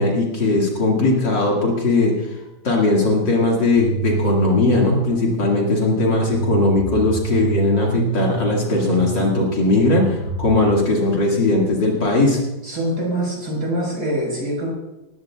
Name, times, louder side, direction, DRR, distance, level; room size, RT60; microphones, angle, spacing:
voice 1, 0.0-2.4 2.6-12.4, left 2 dB, 60° left, -2 dB, 2.8 m, -19 dB
sound 1, 3.8-10.6, right 5 dB, 25° right, 3.2 m, -27 dB
voice 2, 12.6-14.7, right 1 dB, 50° right, -1 dB, 5.6 m, -24 dB
19.5 x 15.5 x 2.4 m, 0.98 s
omnidirectional pair, 2.3 m